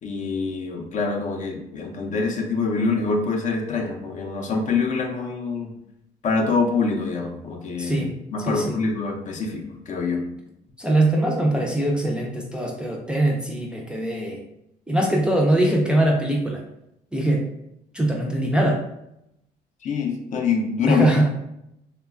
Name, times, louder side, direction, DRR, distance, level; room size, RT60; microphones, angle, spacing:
voice 1, 0.0-5.7 6.2-10.2 19.8-21.1, left 4 dB, 45° left, 3 dB, 0.5 m, -25 dB
voice 2, 7.8-8.1 8.5-8.8 10.8-14.4 14.9-16.6 17.1-17.5 17.9-18.8 20.9-21.3, right 1 dB, 5° right, -1 dB, 0.4 m, -22 dB
3.0 x 2.2 x 2.4 m, 0.82 s
cardioid pair, 110°, 17 cm